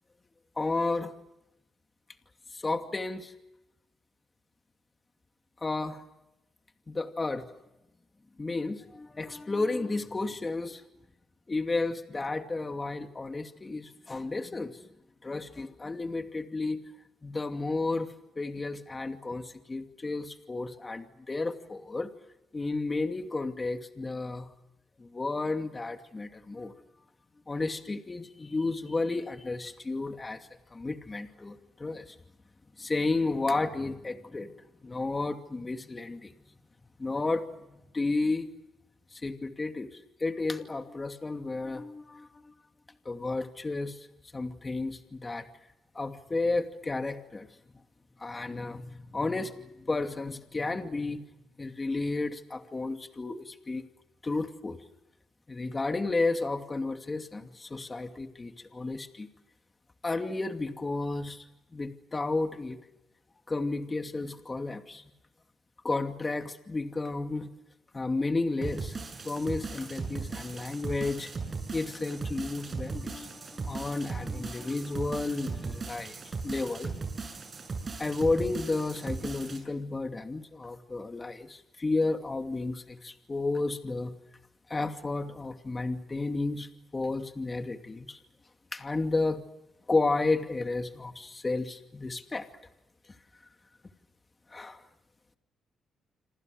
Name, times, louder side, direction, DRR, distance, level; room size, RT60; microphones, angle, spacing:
voice 1, 0.6-1.1 2.5-3.3 5.6-6.0 6.9-7.5 8.4-10.8 11.5-14.8 15.2-16.8 17.2-18.1 18.4-22.1 22.5-24.5 25.0-26.7 27.5-32.1 32.8-34.5 34.8-36.3 37.0-38.5 39.1-42.5 43.0-44.1 44.3-45.5 45.9-47.5 48.2-51.2 51.6-53.9 54.2-54.8 55.5-59.3 60.0-61.4 61.7-62.8 63.5-65.1 65.8-67.5 67.9-69.0 69.2-71.3 71.7-76.9 78.0-84.1 84.7-88.2 88.7-89.4 89.9-92.5 94.5-94.8, left 3 dB, 25° left, 6 dB, 2.5 m, -32 dB
sound 1, 68.6-79.6, right 4 dB, 35° right, 7.6 m, -38 dB
28.0 x 26.5 x 6.6 m, 0.94 s
cardioid pair, 90°, 0 cm